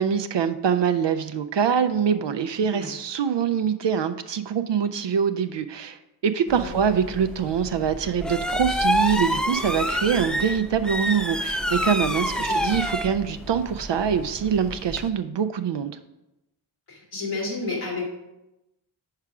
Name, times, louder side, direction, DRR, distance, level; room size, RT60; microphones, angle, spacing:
voice 1, 0.0-15.9, right 7 dB, 60° right, 10 dB, 0.5 m, -24 dB
sound 1, 6.5-15.1, equal, ahead, 0.5 m, -28 dB
voice 2, 12.4-12.8 16.9-18.1, left 3 dB, 85° left, -4 dB, 2.9 m, -31 dB
5.7 x 4.8 x 5.9 m, 0.94 s
cardioid pair, 50°, 50 cm